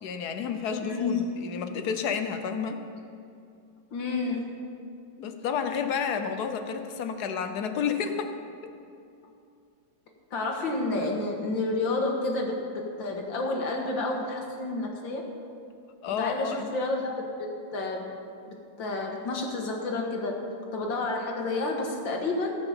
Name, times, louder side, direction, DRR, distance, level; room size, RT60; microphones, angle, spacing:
voice 1, 0.0-2.8 5.2-8.3 16.0-16.7, left 6 dB, 60° left, 7 dB, 1.3 m, -30 dB
voice 2, 0.8-1.3 3.9-4.5 10.3-15.3 16.1-18.1 18.5-20.4 20.7-22.6, left 2 dB, 80° left, 1 dB, 2.3 m, -30 dB
17.0 x 6.0 x 7.2 m, 2.5 s
omnidirectional pair, 2.0 m